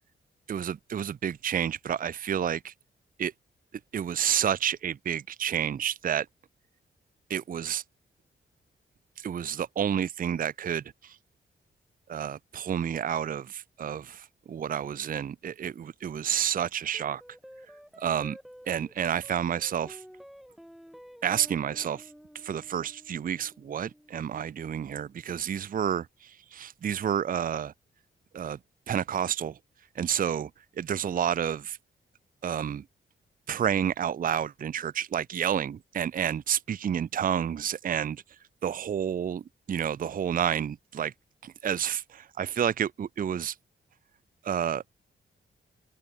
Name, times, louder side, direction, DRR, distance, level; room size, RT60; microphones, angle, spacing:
voice 1, 0.5-2.7 3.2-3.3 3.9-6.3 7.3-7.8 9.2-11.2 12.1-17.2 18.0-18.4 18.7-20.0 21.2-22.1 22.3-27.7 28.3-28.6 28.9-29.6 30.0-30.5 30.8-31.8 32.4-32.8 33.5-38.2 38.6-41.1 41.4-43.6 44.4-44.8, right 9 dB, 45° right, 0.5 m, -30 dB
sound 1, 16.9-25.6, equal, ahead, 2.6 m, -51 dB
open air
cardioid pair, 70°, 20 cm